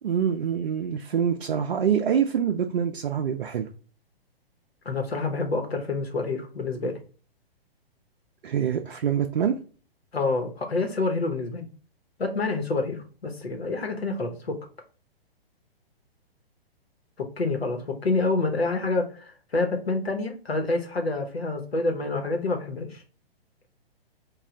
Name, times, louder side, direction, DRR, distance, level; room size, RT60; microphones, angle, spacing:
voice 1, 0.0-3.7 8.4-9.6, right 8 dB, 60° right, 3 dB, 0.5 m, -25 dB
voice 2, 4.8-7.0 10.1-11.7 12.2-14.6 17.2-23.0, left 3 dB, 80° left, 3 dB, 1.0 m, -27 dB
3.1 x 2.4 x 3.7 m, 0.38 s
figure-of-eight pair, 120°, 31 cm